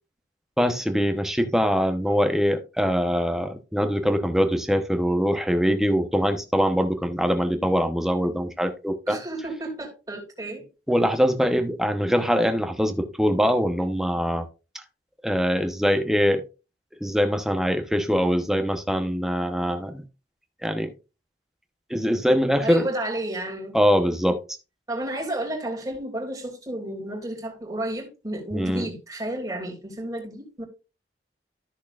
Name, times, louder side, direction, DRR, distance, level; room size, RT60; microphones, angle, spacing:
voice 1, 0.6-9.2 10.9-14.5 14.7-14.8 15.2-16.4 17.0-20.0 20.6-20.9 21.9-22.9 23.7-24.4 28.5-28.9, equal, ahead, 0.9 m, -23 dB
voice 2, 9.1-10.7 22.6-23.7 24.9-30.7, right 1 dB, 20° right, 2.7 m, -32 dB
13.5 x 6.4 x 2.5 m
head